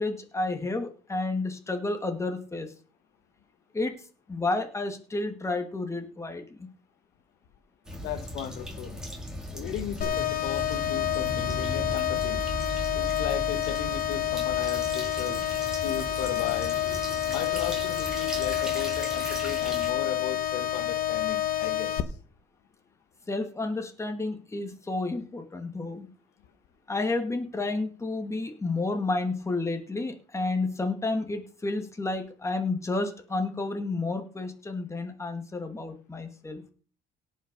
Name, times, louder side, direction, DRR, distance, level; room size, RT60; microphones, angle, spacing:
voice 1, 0.0-2.7 3.7-4.0 4.3-6.7 16.8-17.0 23.3-26.1 26.9-36.6, left 2 dB, 15° left, 6 dB, 2.1 m, -31 dB
sound 1, 7.9-19.9, equal, 5° right, 4.4 m, -37 dB
voice 2, 8.0-9.0 9.5-12.4 12.9-15.4 15.7-16.8 17.3-22.0, left 9 dB, 85° left, 9 dB, 1.5 m, -36 dB
sound 2, 10.0-22.0, left 12 dB, 60° left, 1.3 m, -29 dB
17.5 x 5.9 x 5.3 m, 0.40 s
cardioid pair, 110°, 17 cm